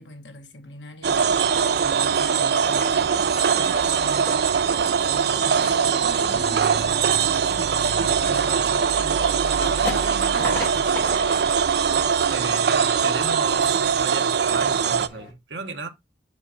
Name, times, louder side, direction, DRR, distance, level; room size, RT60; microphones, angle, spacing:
voice 1, 0.0-3.3 3.8-4.6 5.0-9.5 9.8-11.1, left 2 dB, 90° left, 1.5 m, -42 dB
sound 1, 1.0-15.1, right 6 dB, 65° right, 0.4 m, -21 dB
sound 2, 2.6-15.3, left 1 dB, 10° left, 3.7 m, -37 dB
voice 2, 12.2-15.9, right 3 dB, 85° right, 1.2 m, -34 dB
7.4 x 4.9 x 2.8 m
head